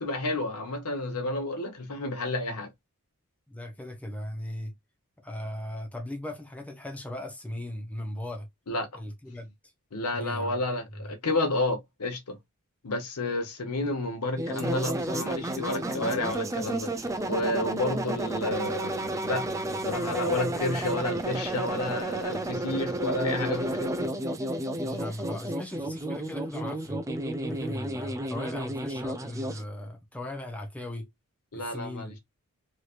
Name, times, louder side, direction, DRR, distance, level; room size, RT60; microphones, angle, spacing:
voice 1, 0.0-2.7 8.7-9.0 9.9-12.4 12.8-24.1 31.5-32.2, left 2 dB, 85° left, 1.0 m, -31 dB
voice 2, 3.5-4.7 5.2-8.5 8.9-9.5 10.1-10.6 10.9-11.1 24.8-27.0 27.5-31.1 31.5-32.2, left 1 dB, 5° left, 0.7 m, -38 dB
sound 1, 14.4-29.6, right 1 dB, 15° right, 0.3 m, -32 dB
3.1 x 2.9 x 2.4 m
head